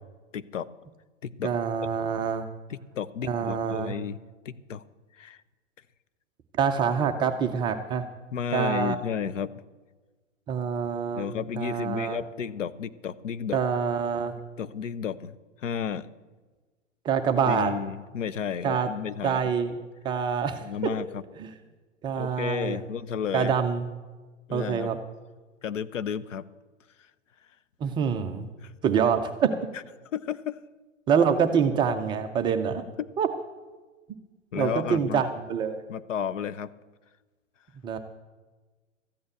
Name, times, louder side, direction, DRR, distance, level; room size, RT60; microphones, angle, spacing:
voice 1, 0.3-0.7 1.2-1.5 2.7-4.2 4.4-4.8 5.2-5.4 8.3-9.5 11.2-13.6 14.6-16.1 17.5-19.4 20.6-21.2 22.2-23.5 24.5-24.9 25.6-26.4 28.6-28.7 30.1-30.6 34.5-35.2 35.9-36.7, left 8 dB, 70° left, 14 dB, 0.8 m, -32 dB
voice 2, 1.4-2.5 3.2-3.9 6.6-8.0 8.5-9.0 10.5-11.3 11.6-12.2 13.5-14.3 17.0-17.7 18.6-18.9 19.2-19.7 20.0-20.9 21.4-21.5 22.0-22.8 23.3-23.9 24.5-25.0 27.8-28.5 28.8-29.3 31.1-32.8 33.2-33.3 34.6-35.8 37.8-38.0, right 7 dB, 15° right, 7 dB, 0.4 m, -26 dB
13.5 x 8.6 x 8.0 m, 1.3 s
figure-of-eight pair, 105°, 39 cm